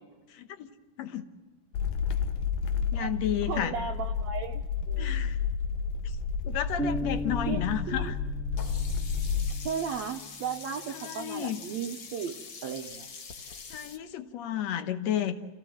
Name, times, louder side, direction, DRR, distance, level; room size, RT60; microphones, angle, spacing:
voice 1, 0.3-0.7 1.0-1.3 2.9-3.8 5.0-5.4 6.4-8.2 10.9-11.6 13.7-15.4, left 10 dB, 65° left, 9 dB, 2.1 m, -32 dB
sound 1, 1.7-9.5, left 6 dB, 85° left, 2.6 m, -31 dB
voice 2, 3.5-5.2 7.5-8.1 9.6-12.4 12.6-13.1, right 7 dB, 70° right, 1 dB, 2.0 m, -35 dB
sound 2, 6.8-10.5, right 1 dB, 5° left, 0.9 m, -37 dB
Sink (filling or washing), 8.6-14.0, left 5 dB, 50° left, 1.7 m, -44 dB
29.0 x 16.5 x 7.7 m, 1.4 s
omnidirectional pair, 3.5 m